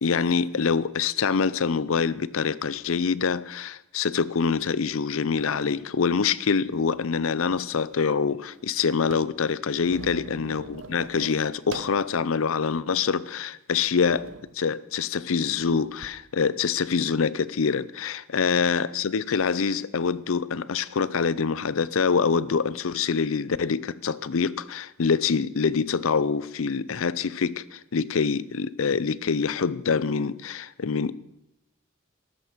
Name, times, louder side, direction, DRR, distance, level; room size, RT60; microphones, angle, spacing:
voice 1, 0.0-14.3 14.5-31.1, left 5 dB, 80° left, 0.6 m, -25 dB
sound 1, 5.3-5.9 6.6-7.7 7.9-8.0 8.3-12.1 12.6-12.7 13.4-13.6 14.0-14.5 15.5-16.1, right 3 dB, 65° right, 0.8 m, -44 dB
13.0 x 13.0 x 5.1 m
head